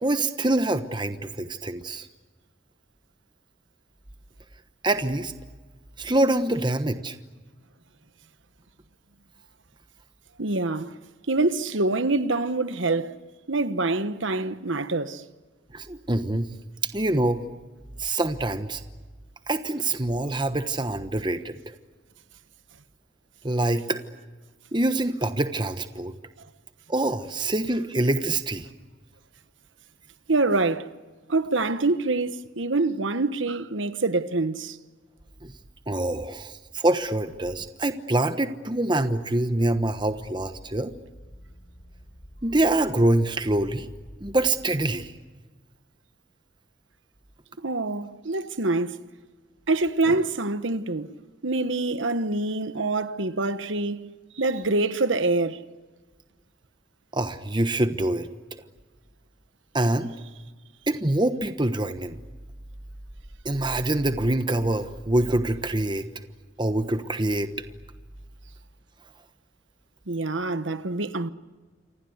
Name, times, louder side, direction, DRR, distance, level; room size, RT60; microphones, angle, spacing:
voice 1, 0.0-2.1 4.8-5.3 6.0-7.2 15.7-16.5 16.9-17.4 18.0-18.8 19.5-21.7 23.4-24.0 24.7-26.1 26.9-28.7 35.4-35.5 35.9-40.9 42.4-43.9 44.2-45.1 57.1-58.3 59.7-60.1 60.9-62.2 63.4-66.1 66.6-67.5, right 1 dB, 25° right, 1.1 m, -25 dB
voice 2, 10.4-10.9 11.3-13.2 13.5-15.2 30.3-30.9 31.3-34.8 47.6-49.0 49.7-51.2 51.4-54.0 54.3-55.6 70.1-71.3, right 2 dB, 75° right, 1.2 m, -25 dB
sound 1, 39.7-45.1, equal, 45° left, 4.7 m, -48 dB
29.0 x 25.0 x 8.0 m
head